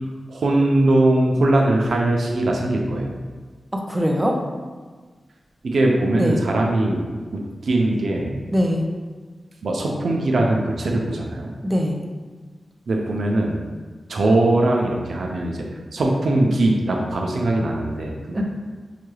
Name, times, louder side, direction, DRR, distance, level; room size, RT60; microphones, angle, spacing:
voice 1, 0.3-3.2 5.6-7.0 7.6-8.4 9.6-11.5 12.9-13.6 14.1-15.6 15.9-18.4, right 2 dB, 70° right, 0 dB, 0.5 m, -20 dB
voice 2, 3.7-4.4 6.1-6.4 8.5-8.9 11.6-12.0 18.3-18.4, equal, 10° right, 0 dB, 0.5 m, -22 dB
5.7 x 2.2 x 3.1 m, 1.4 s
wide cardioid pair, 125°, 0 cm